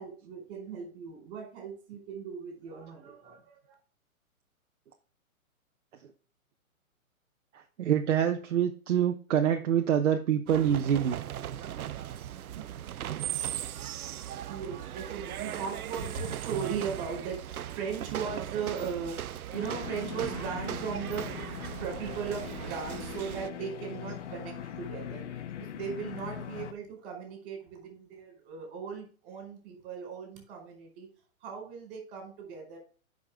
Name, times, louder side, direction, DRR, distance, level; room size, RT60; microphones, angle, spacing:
voice 1, 0.0-3.7 14.4-31.1 31.4-32.8, right 6 dB, 40° right, 1 dB, 4.7 m, -38 dB
voice 2, 7.5-11.2 11.9-12.0 12.6-12.7, right 9 dB, 60° right, 5 dB, 0.9 m, -26 dB
sound 1, 10.5-23.5, right 11 dB, 90° right, 0.6 m, -38 dB
sound 2, 19.5-26.7, left 9 dB, 55° left, 0.9 m, -41 dB
9.7 x 5.4 x 3.5 m, 0.39 s
hypercardioid pair, 140°, 43 cm